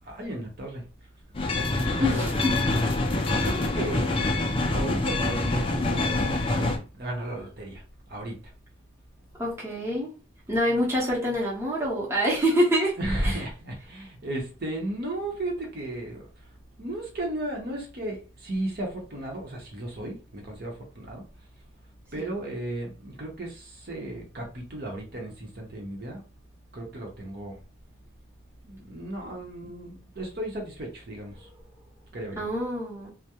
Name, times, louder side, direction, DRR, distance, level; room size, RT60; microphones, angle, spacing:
voice 1, 0.0-0.8 1.7-2.5 3.4-4.1 4.7-7.8 8.1-8.4 13.0-16.5 16.8-21.2 22.1-26.2 26.7-27.6 28.6-31.5 32.1-32.5, right 1 dB, 50° right, 0.7 m, -34 dB
sound 1, 1.3-6.8, left 2 dB, 25° left, 0.4 m, -26 dB
voice 2, 2.0-2.6 9.4-10.1 10.5-13.0 13.2-13.3 22.2-22.3 32.4-33.1, equal, 15° right, 0.7 m, -26 dB
2.3 x 2.0 x 2.8 m
head